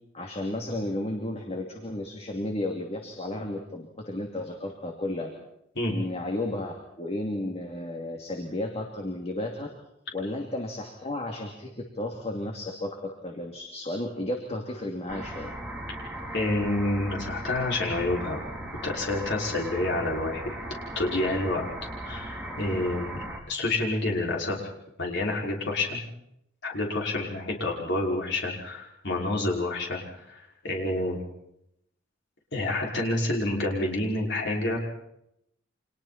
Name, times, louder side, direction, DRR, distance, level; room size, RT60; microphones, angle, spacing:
voice 1, 0.1-5.3 5.9-9.7 10.1-15.5, left 1 dB, 30° left, 1 dB, 2.8 m, -33 dB
sound 1, 15.1-23.4, right 1 dB, 5° right, 3.6 m, -37 dB
voice 2, 16.3-18.4 18.8-20.5 20.9-21.6 22.0-22.3 22.6-24.7 25.0-26.0 26.6-30.0 30.3-31.2 32.5-34.8, left 2 dB, 60° left, -1 dB, 6.0 m, -28 dB
30.0 x 26.5 x 4.4 m, 0.78 s
head